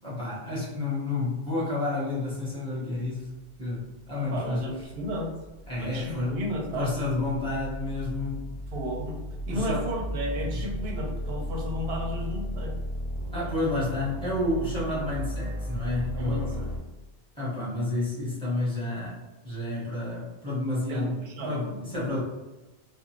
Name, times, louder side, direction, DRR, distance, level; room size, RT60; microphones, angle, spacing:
voice 1, 0.0-3.3 3.6-4.6 5.7-6.4 6.7-8.5 9.5-9.8 10.4-10.6 13.3-16.6 17.4-22.2, left 2 dB, 5° left, -9 dB, 1.1 m, -30 dB
sound 1, 3.5-16.8, equal, 85° left, 1.1 m, -35 dB
voice 2, 4.2-5.3 5.8-6.9 8.7-9.2 9.5-12.7 16.1-16.7 20.9-21.8, equal, 65° right, 0 dB, 0.8 m, -33 dB
2.4 x 2.3 x 3.0 m, 1.1 s
omnidirectional pair, 1.2 m